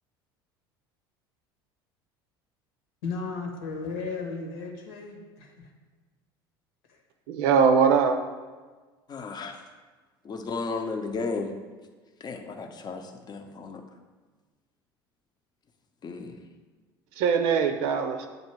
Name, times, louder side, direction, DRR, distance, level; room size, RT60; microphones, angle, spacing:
voice 1, 3.0-5.7 6.9-7.0, left 4 dB, 75° left, 1 dB, 1.2 m, -35 dB
voice 2, 7.3-8.2 17.2-18.3, right 6 dB, 65° right, 7 dB, 0.6 m, -21 dB
voice 3, 9.1-9.6 10.2-11.5 12.2-13.8 16.0-16.4, left 4 dB, 35° left, 4 dB, 0.7 m, -34 dB
7.9 x 2.7 x 4.5 m, 1.4 s
hypercardioid pair, 70°, 12 cm